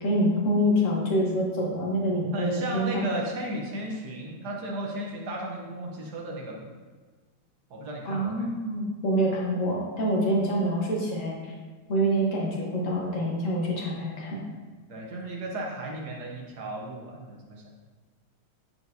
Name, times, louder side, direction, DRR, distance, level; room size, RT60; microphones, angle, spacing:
voice 1, 0.0-3.0 8.1-11.5 11.9-14.4, equal, 40° left, -3 dB, 1.3 m, -26 dB
voice 2, 2.3-6.7 7.7-8.5 14.9-17.6, right 1 dB, 60° right, -1 dB, 1.2 m, -35 dB
8.9 x 4.4 x 2.7 m, 1.4 s
omnidirectional pair, 2.4 m